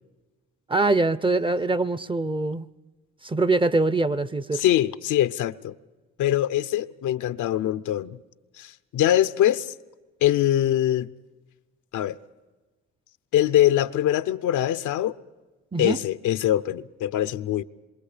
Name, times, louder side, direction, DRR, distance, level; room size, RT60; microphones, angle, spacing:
voice 1, 0.7-2.7 3.2-4.6 15.7-16.0, right 3 dB, 15° right, 0.6 m, -23 dB
voice 2, 4.5-5.7 6.2-8.2 8.6-9.7 10.2-11.1 11.9-12.2 13.3-15.1 15.8-17.6, left 12 dB, 75° left, 0.7 m, -23 dB
27.0 x 22.5 x 5.0 m
cardioid pair, 90°, 30 cm